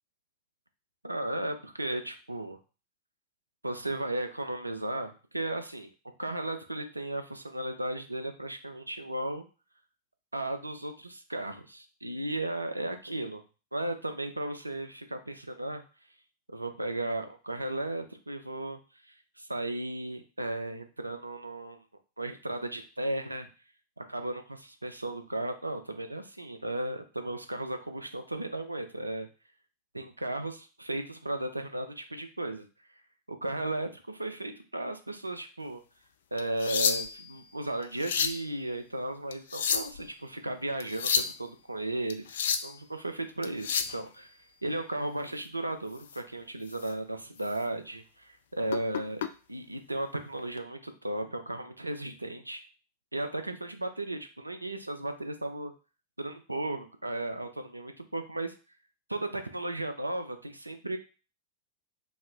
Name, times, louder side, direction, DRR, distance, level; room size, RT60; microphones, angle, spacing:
voice 1, 1.0-2.6 3.6-5.9 6.2-9.5 10.3-13.4 13.7-15.8 16.5-21.8 22.2-23.5 24.0-29.3 29.9-32.7 33.3-35.8 36.3-42.2 42.6-44.3 44.6-49.2 49.5-52.6 53.1-55.7 56.2-58.5 59.1-61.0, right 1 dB, 85° right, 7 dB, 0.5 m, -35 dB
sound 1, 36.4-37.3 37.8-38.4 39.3-40.0 40.8-41.3 42.1-42.7 43.4-44.0 46.0-46.2 46.7-46.9 47.4-47.5 48.7-49.3 50.4-50.6, left 7 dB, 65° left, 0.3 m, -30 dB
3.1 x 2.9 x 3.6 m, 0.34 s
figure-of-eight pair, 90°, 0 cm